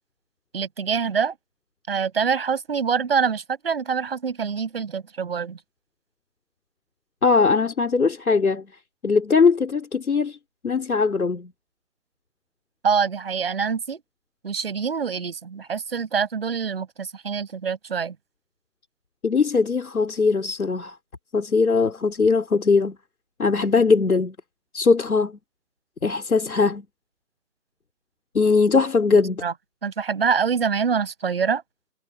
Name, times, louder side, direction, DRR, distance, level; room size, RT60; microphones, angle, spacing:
voice 1, 0.5-1.3 1.9-5.6 12.8-14.0 14.4-18.1 29.4-29.5 29.8-31.6, right 6 dB, 40° right, 6.5 m, -25 dB
voice 2, 7.2-8.7 9.0-10.4 10.6-11.5 19.2-21.0 21.3-23.0 23.4-24.4 24.7-25.4 26.0-26.9 28.3-29.5, left 4 dB, 75° left, 3.6 m, -20 dB
hypercardioid pair, 170°, 44 cm